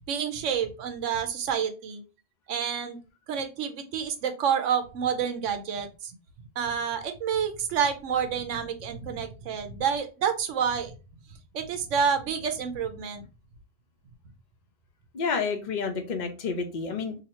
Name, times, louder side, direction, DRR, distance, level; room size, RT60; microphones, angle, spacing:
voice 1, 0.1-2.0 2.5-3.0 3.3-6.1 6.6-10.9 11.5-13.2, right 7 dB, 80° right, 8 dB, 1.0 m, -28 dB
voice 2, 15.1-17.1, left 5 dB, 45° left, 5 dB, 0.7 m, -29 dB
2.9 x 2.7 x 4.1 m, 0.31 s
omnidirectional pair, 1.3 m